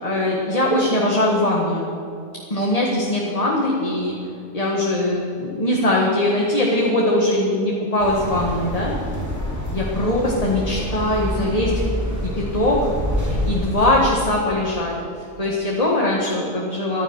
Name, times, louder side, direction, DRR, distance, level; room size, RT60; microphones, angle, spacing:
voice 1, 0.0-1.9 2.5-4.1 4.5-8.9 9.7-11.7 12.3-12.8 13.2-14.9 15.4-17.0, left 1 dB, 30° left, -3 dB, 1.8 m, -21 dB
sound 1, 8.0-14.2, equal, 15° right, 2.8 m, -27 dB
15.0 x 11.5 x 6.5 m, 2.7 s
omnidirectional pair, 1.2 m